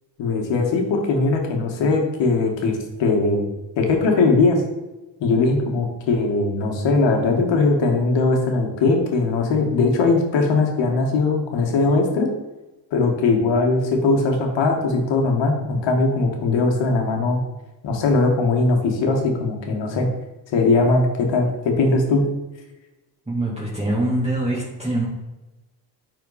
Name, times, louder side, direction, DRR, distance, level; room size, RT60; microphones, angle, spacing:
voice 1, 0.2-3.5 3.8-4.6 5.2-12.3 12.9-17.4 17.8-20.1 20.5-22.2, left 3 dB, 85° left, 3 dB, 1.7 m, -20 dB
voice 2, 23.3-25.1, right 1 dB, 15° right, -7 dB, 2.6 m, -24 dB
9.7 x 4.4 x 4.1 m, 1.1 s
cardioid pair, 80°, 43 cm